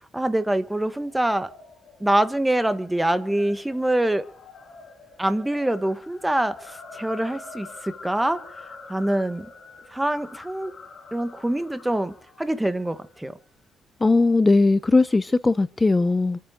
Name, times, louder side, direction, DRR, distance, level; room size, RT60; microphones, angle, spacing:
voice 1, 0.1-1.5 2.0-4.3 5.2-9.5 9.9-10.7 11.1-13.4, right 1 dB, 10° right, 1.6 m, -25 dB
sound 1, 0.9-13.3, left 3 dB, 40° left, 5.4 m, -46 dB
voice 2, 14.0-16.4, left 3 dB, 20° left, 0.6 m, -19 dB
27.0 x 9.5 x 3.9 m
cardioid pair, 90°, 0 cm